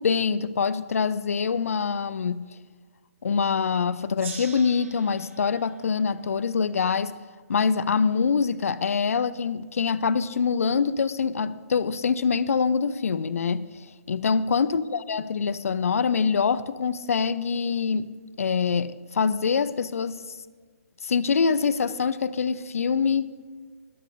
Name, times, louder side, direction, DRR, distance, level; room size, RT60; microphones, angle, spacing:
voice 1, 0.0-2.4 3.2-7.1 7.5-18.1 18.4-20.4 21.0-23.3, left 5 dB, 65° left, 15 dB, 0.6 m, -25 dB
Gong, 4.2-7.3, right 6 dB, 65° right, 4.6 m, -44 dB
20.5 x 11.5 x 2.7 m, 1.5 s
figure-of-eight pair, 140°, 8 cm